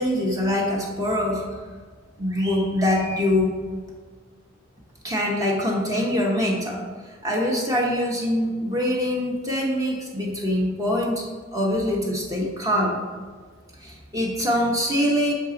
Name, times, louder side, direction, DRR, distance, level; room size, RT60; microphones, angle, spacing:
voice 1, 0.0-1.4 2.2-3.5 5.0-6.8 7.2-11.2 11.5-13.0 13.8-15.3, left 1 dB, 20° right, -2 dB, 0.9 m, -24 dB
6.5 x 4.6 x 3.8 m, 1.5 s
head